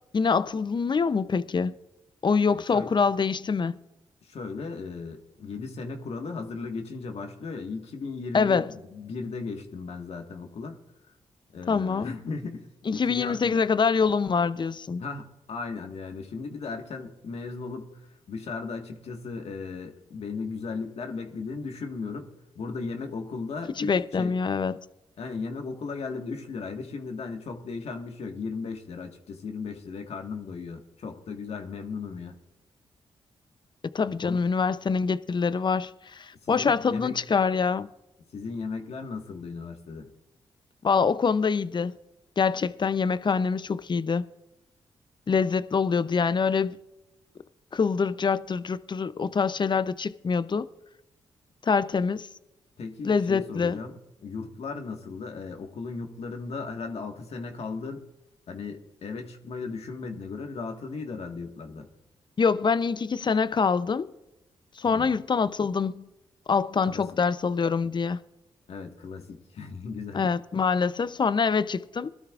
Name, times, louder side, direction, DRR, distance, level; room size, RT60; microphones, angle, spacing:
voice 1, 0.1-1.7 2.2-3.8 8.3-8.7 11.7-12.1 12.9-15.0 23.8-24.8 33.9-37.9 40.8-42.0 42.4-44.2 45.3-46.8 47.7-50.7 51.6-52.3 53.0-53.8 62.4-64.1 64.8-66.1 66.5-68.2 70.1-72.1, left 5 dB, 45° left, 0.7 m, -25 dB
voice 2, 2.5-2.9 4.2-10.8 11.5-13.6 15.0-18.0 18.3-22.3 22.5-24.4 25.2-32.4 34.2-34.4 36.4-37.2 38.3-40.1 52.8-58.0 58.5-61.9 64.8-65.1 66.8-67.0 68.7-70.2, left 4 dB, 70° left, 1.7 m, -36 dB
21.0 x 12.5 x 2.5 m
supercardioid pair, 45°, 11 cm